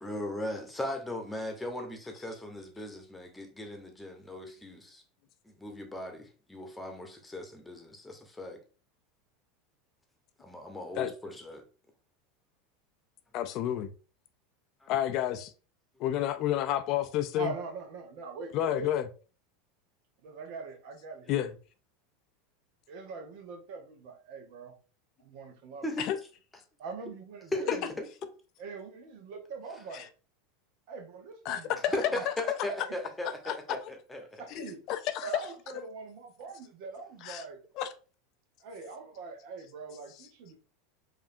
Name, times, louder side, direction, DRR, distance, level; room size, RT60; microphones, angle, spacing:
voice 1, 0.0-5.0 5.5-8.6 10.4-11.6 14.8-14.9 25.8-26.1 27.5-28.0 31.9-34.4, left 1 dB, 10° left, 1.0 m, -38 dB
voice 2, 13.3-13.9 14.9-15.5 16.0-17.5 18.5-19.0 21.3-21.5 26.0-26.2 29.9-30.1 31.5-31.9 32.3-32.4 33.4-33.5 34.5-35.3 35.7-35.8 37.2-37.4 37.8-37.9, left 12 dB, 55° left, 0.4 m, -30 dB
voice 3, 17.3-18.9 20.2-21.4 22.9-24.7 25.2-26.0 26.8-27.9 28.6-30.1 30.9-32.2 32.7-32.9 33.4-33.8 34.4-34.8 35.2-37.6 38.6-40.6, right 4 dB, 65° right, 0.8 m, -42 dB
4.9 x 2.6 x 2.6 m
hypercardioid pair, 95°, 0 cm